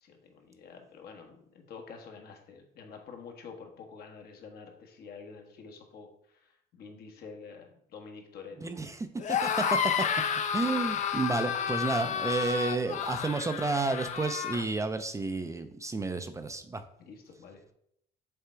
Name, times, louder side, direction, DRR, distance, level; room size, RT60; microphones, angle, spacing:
voice 1, 0.0-6.1 6.3-8.7 17.0-17.7, left 5 dB, 65° left, 3 dB, 1.4 m, -48 dB
voice 2, 8.6-9.6 10.5-16.8, right 3 dB, 20° right, 9 dB, 0.5 m, -31 dB
sound 1, 9.2-14.6, left 7 dB, 45° left, 0.6 m, -31 dB
6.8 x 3.6 x 4.5 m, 0.72 s
cardioid pair, 110°, 17 cm